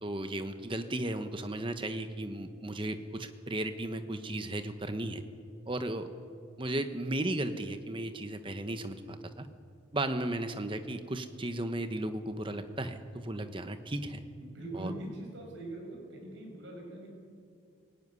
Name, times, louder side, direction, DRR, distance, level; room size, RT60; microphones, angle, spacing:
voice 1, 0.0-5.2 5.7-6.1 6.6-9.5 9.9-14.2 14.7-14.9, right 1 dB, 25° right, 8 dB, 1.1 m, -35 dB
voice 2, 14.4-17.1, right 1 dB, 65° right, -1 dB, 6.7 m, -42 dB
18.0 x 17.5 x 9.7 m, 2.4 s
head